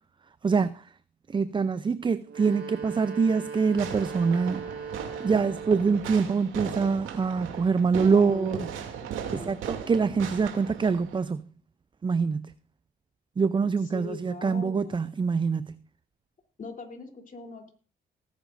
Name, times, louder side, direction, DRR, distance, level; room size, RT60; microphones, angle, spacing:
voice 1, 0.4-0.8 1.3-4.6 5.2-8.6 9.3-11.4 12.0-12.5 13.4-15.7, right 5 dB, 25° right, 0.5 m, -25 dB
sound 1, 2.2-6.2, right 6 dB, 60° right, 2.5 m, -39 dB
Fireworks, 3.8-11.2, right 8 dB, 85° right, 2.6 m, -38 dB
voice 2, 8.1-8.6 9.2-9.5 13.9-15.1 16.6-17.7, left 4 dB, 40° left, 3.3 m, -41 dB
18.5 x 10.5 x 2.5 m
cardioid pair, 90°, 20 cm